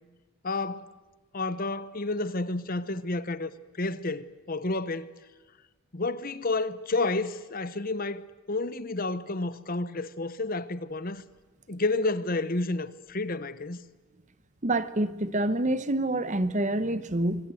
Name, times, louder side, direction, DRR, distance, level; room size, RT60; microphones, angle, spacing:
voice 1, 0.4-0.9 1.3-3.5 3.8-5.1 5.9-11.2 11.7-13.8, left 2 dB, 40° left, 1.0 m, -30 dB
voice 2, 14.6-17.5, right 1 dB, 35° right, 1.0 m, -27 dB
25.5 x 24.5 x 7.8 m
head